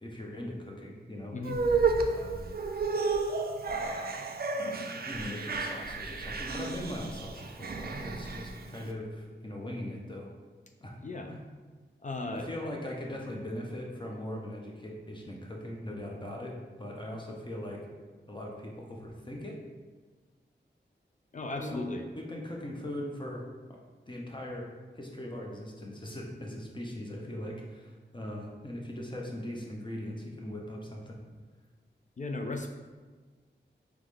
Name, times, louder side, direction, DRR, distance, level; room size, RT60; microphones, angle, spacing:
voice 1, 0.0-1.5 2.0-2.5 3.6-4.3 5.1-10.3 10.8-11.0 11.3-11.4 12.3-17.8 18.3-19.6 21.6-21.8 22.1-23.4 23.7-23.8 24.1-24.7 24.9-31.2, left 1 dB, 25° left, -1 dB, 0.9 m, -40 dB
sound 1, 1.4-8.8, right 4 dB, 55° right, 0.4 m, -32 dB
voice 2, 12.0-12.5 21.3-22.0 32.2-32.7, left 2 dB, 40° left, 3 dB, 0.4 m, -35 dB
3.7 x 3.1 x 3.4 m, 1.4 s
cardioid pair, 40°, 19 cm